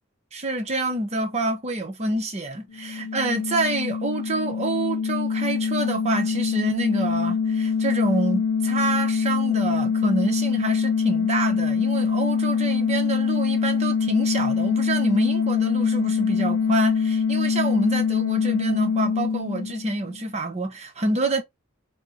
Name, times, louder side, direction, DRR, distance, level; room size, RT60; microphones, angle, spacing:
voice 1, 0.3-21.4, right 2 dB, 35° right, 0.8 m, -27 dB
sound 1, 2.7-20.2, left 6 dB, 90° left, 0.3 m, -24 dB
4.2 x 2.1 x 2.5 m
head